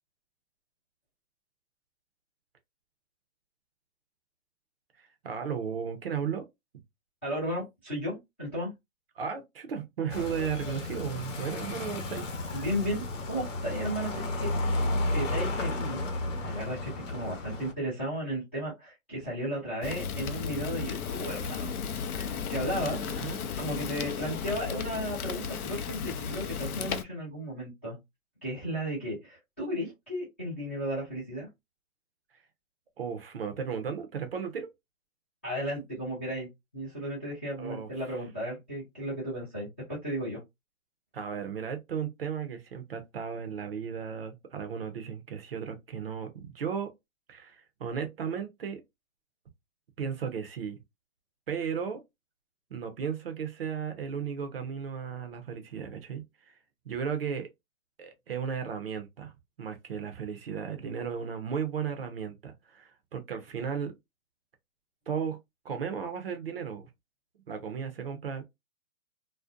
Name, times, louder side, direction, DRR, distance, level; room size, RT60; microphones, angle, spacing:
voice 1, 5.0-6.4 9.2-12.3 22.7-23.4 33.0-34.7 37.6-38.2 41.1-46.9 47.3-48.8 50.0-50.8 51.5-52.0 52.7-56.6 56.9-57.5 58.0-59.3 59.6-63.9 65.1-65.4 65.6-66.9 67.5-68.4, right 7 dB, 45° right, 0.5 m, -35 dB
voice 2, 7.2-8.7 12.5-14.9 15.1-16.0 16.4-21.7 22.1-23.0 23.6-28.0 28.4-31.5 35.4-36.5 36.7-40.4, equal, 10° left, 0.4 m, -34 dB
sound 1, 10.1-17.7, left 2 dB, 60° left, 0.9 m, -32 dB
Fire, 19.8-27.0, left 6 dB, 80° left, 0.6 m, -34 dB
2.5 x 2.1 x 2.4 m
hypercardioid pair, 145°, 43 cm